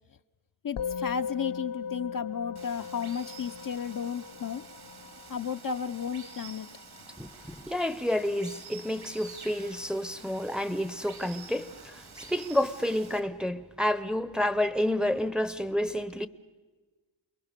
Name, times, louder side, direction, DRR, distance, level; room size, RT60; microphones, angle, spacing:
voice 1, 0.6-4.6 5.3-6.7, left 7 dB, 45° left, 0.7 m, -33 dB
Musical instrument, 0.8-10.3, left 7 dB, 65° left, 1.2 m, -40 dB
Water, 2.6-13.2, right 5 dB, 55° right, 2.0 m, -49 dB
voice 2, 7.2-16.3, left 1 dB, ahead, 0.8 m, -30 dB
29.0 x 21.5 x 6.7 m
cardioid pair, 60°, 46 cm